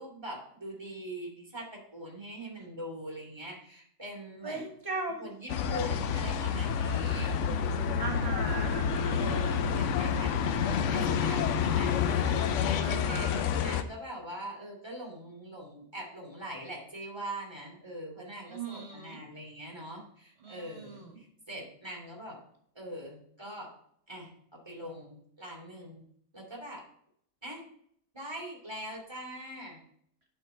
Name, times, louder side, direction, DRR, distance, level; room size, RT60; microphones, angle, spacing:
voice 1, 0.0-4.6 5.2-7.3 9.2-12.5 12.8-13.3 13.6-22.4 22.7-23.7 24.1-26.0 26.3-26.8 27.4-27.6 28.1-29.8, right 1 dB, 20° right, -2 dB, 2.4 m, -42 dB
voice 2, 4.4-5.3 7.9-9.6 12.8-13.5 18.5-19.2 20.4-21.2, right 3 dB, 50° right, 1 dB, 1.7 m, -39 dB
sound 1, 5.5-13.8, left 7 dB, 70° left, 0.9 m, -28 dB
9.3 x 3.9 x 4.3 m, 0.66 s
omnidirectional pair, 1.4 m